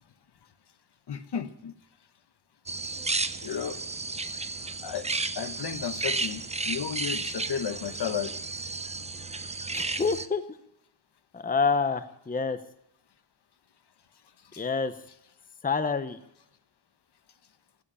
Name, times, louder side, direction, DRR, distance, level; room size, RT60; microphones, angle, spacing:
voice 1, 1.1-1.7 3.4-3.8 4.8-5.1 5.4-8.3 14.5-14.6, left 7 dB, 75° left, 11 dB, 1.1 m, -33 dB
sound 1, 2.7-10.3, right 3 dB, 15° right, 0.5 m, -33 dB
voice 2, 9.7-10.4 11.3-12.6 14.6-14.9 15.6-16.2, left 5 dB, 20° left, 11 dB, 0.7 m, -27 dB
15.0 x 7.8 x 10.0 m, 0.79 s
wide cardioid pair, 160°, 40 cm